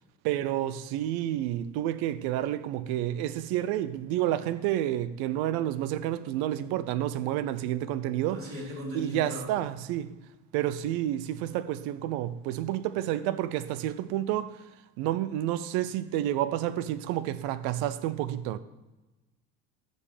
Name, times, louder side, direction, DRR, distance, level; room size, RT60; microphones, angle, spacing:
voice 1, 0.2-8.6 8.9-10.1 10.5-14.6 15.0-18.6, right 12 dB, 80° right, 0.7 m, -30 dB
voice 2, 8.3-9.5, equal, 35° right, 3.6 m, -37 dB
14.0 x 5.4 x 5.0 m
cardioid pair, 115°, 37 cm